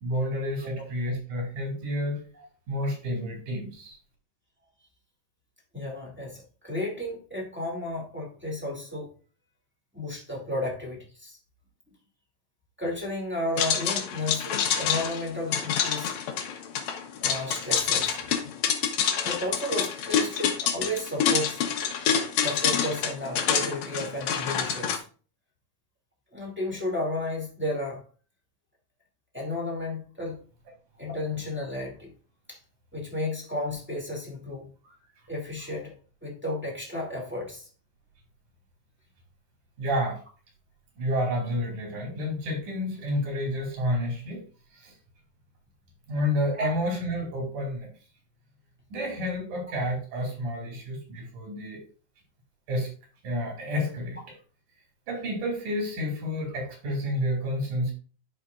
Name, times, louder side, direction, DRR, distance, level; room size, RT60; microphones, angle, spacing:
voice 1, 0.0-2.2 2.7-4.0 39.8-40.2 41.0-44.4 44.7-44.9 46.1-47.9 48.9-51.8 52.7-52.9 53.2-54.2 55.1-57.9, equal, 85° right, 4.2 m, -30 dB
voice 2, 5.7-9.1 9.9-11.4 12.8-16.1 17.2-18.3 18.8-18.9 19.2-21.6 22.4-25.0 26.3-28.0 29.3-30.4 31.0-32.1 32.5-32.6 32.9-34.7 35.3-35.9 36.2-37.7 46.6-46.7, left 1 dB, 5° right, 1.8 m, -33 dB
sound 1, 13.6-25.0, left 8 dB, 70° left, 2.1 m, -27 dB
11.5 x 5.1 x 2.4 m
omnidirectional pair, 3.4 m